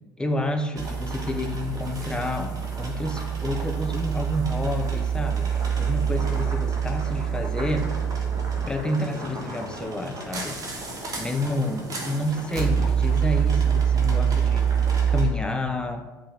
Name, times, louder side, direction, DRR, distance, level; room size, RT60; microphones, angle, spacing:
voice 1, 0.2-7.9 8.7-10.9 11.2-14.7 15.1-16.1, left 1 dB, 10° left, 5 dB, 0.7 m, -29 dB
sound 1, 0.8-15.3, right 7 dB, 35° right, 1.3 m, -26 dB
5.5 x 3.4 x 5.7 m, 1.2 s
figure-of-eight pair, 65°, 11 cm